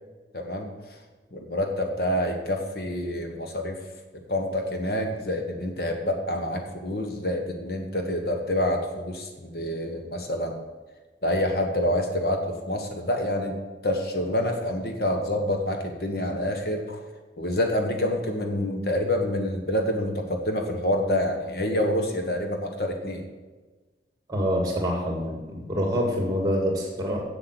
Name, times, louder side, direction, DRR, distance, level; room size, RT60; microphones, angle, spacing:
voice 1, 0.3-0.7 1.3-3.8 4.3-10.6 11.2-13.6 13.8-17.0 17.4-23.3, left 1 dB, 55° left, 4 dB, 1.3 m, -27 dB
voice 2, 24.3-27.2, equal, 20° right, 1 dB, 2.2 m, -26 dB
8.0 x 7.6 x 7.8 m, 1.3 s
head